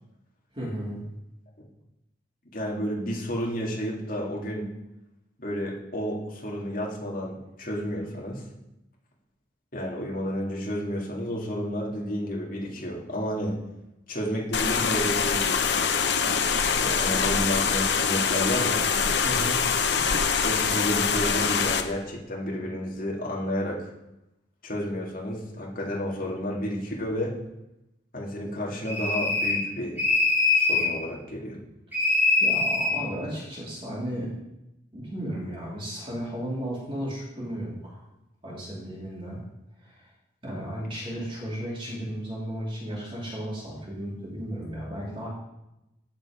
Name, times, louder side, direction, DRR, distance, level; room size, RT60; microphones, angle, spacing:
voice 1, 0.5-1.0 19.2-19.6 32.4-34.3 34.9-38.0 38.4-39.4 39.8-40.1 40.4-45.3, equal, 30° right, -6 dB, 2.9 m, -34 dB
voice 2, 2.5-4.7 5.4-8.4 9.7-13.6 14.1-15.7 16.8-18.9 20.4-23.9 24.6-27.3 28.1-30.0 30.5-31.6, equal, 45° left, -3 dB, 2.4 m, -31 dB
sound 1, 14.5-21.8, left 6 dB, 60° left, 0.8 m, -24 dB
sound 2, 28.8-29.7 30.0-30.9 31.9-33.0, left 3 dB, 10° right, 2.7 m, -23 dB
14.0 x 5.2 x 5.0 m, 0.90 s
head